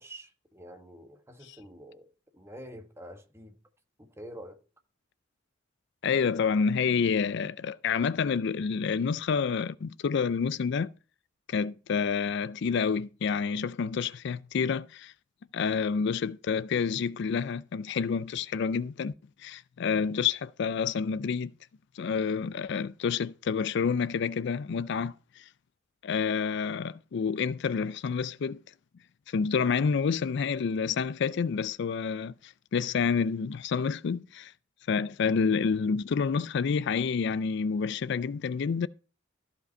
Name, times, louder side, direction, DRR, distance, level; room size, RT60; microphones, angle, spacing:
voice 1, 0.0-2.1 2.3-3.5 4.0-4.6, equal, 15° right, 1.4 m, -47 dB
voice 2, 6.0-10.9 11.5-15.1 15.5-19.1 19.4-21.5 22.0-25.4 26.0-28.6 29.3-34.5 34.9-38.9, left 6 dB, 60° left, 0.4 m, -28 dB
14.0 x 5.3 x 5.4 m
head